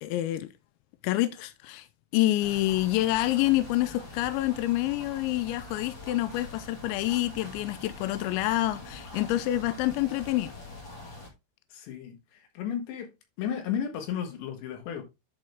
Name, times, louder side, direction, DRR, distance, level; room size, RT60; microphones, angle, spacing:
voice 1, 0.0-0.5 1.0-1.9 2.1-10.5, left 16 dB, 85° left, 2.6 m, -27 dB
sound 1, 2.4-11.3, left 2 dB, 40° left, 1.7 m, -44 dB
voice 2, 11.7-13.1 13.4-15.0, left 8 dB, 70° left, 3.6 m, -34 dB
11.0 x 3.8 x 3.4 m
omnidirectional pair, 5.7 m